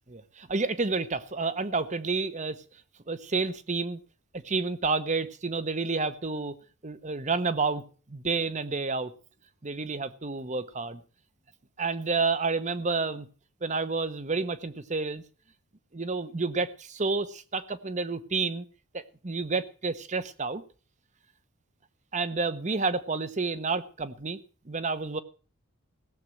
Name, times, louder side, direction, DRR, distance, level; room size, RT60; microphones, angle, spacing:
voice 1, 0.1-2.6 3.1-4.0 4.3-6.6 6.8-7.8 8.1-9.1 9.6-11.0 11.8-13.3 13.6-15.2 15.9-18.6 18.9-20.6 22.1-24.4 24.7-25.2, right 4 dB, 35° right, 13 dB, 0.9 m, -30 dB
16.5 x 7.5 x 7.8 m, 0.39 s
head